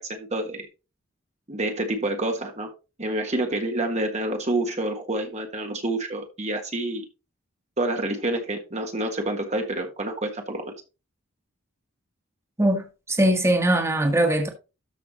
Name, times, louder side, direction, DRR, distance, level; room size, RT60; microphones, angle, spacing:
voice 1, 0.1-0.7 1.5-2.7 3.0-7.0 7.8-10.7, right 1 dB, 35° right, 1.6 m, -28 dB
voice 2, 12.6-14.5, right 1 dB, 15° right, 1.7 m, -21 dB
13.0 x 5.7 x 3.1 m
head